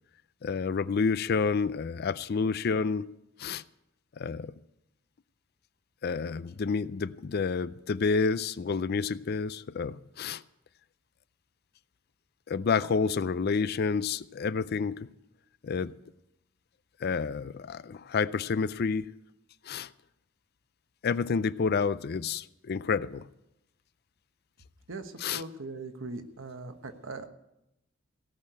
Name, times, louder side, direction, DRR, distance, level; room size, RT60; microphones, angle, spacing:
voice 1, 0.4-3.1 3.4-3.6 4.2-4.5 6.0-10.4 12.5-15.1 15.6-15.9 17.0-19.1 19.6-19.9 21.0-23.3 25.2-25.4, left 5 dB, 50° left, 0.4 m, -29 dB
voice 2, 24.9-27.3, right 3 dB, 65° right, 1.2 m, -40 dB
17.0 x 6.6 x 9.2 m
head